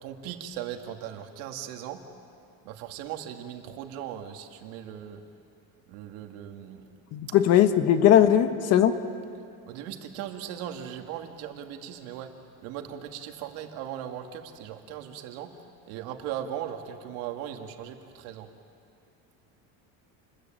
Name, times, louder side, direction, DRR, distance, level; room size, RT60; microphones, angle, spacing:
voice 1, 0.0-2.0 2.6-5.2 5.9-6.8 9.7-12.3 12.6-15.5 15.9-18.5, right 10 dB, 85° right, 4 dB, 2.4 m, -38 dB
voice 2, 7.1-9.0, left 10 dB, 45° left, 9 dB, 1.3 m, -19 dB
28.5 x 21.0 x 9.1 m, 2.5 s
cardioid pair, 175°, 35 cm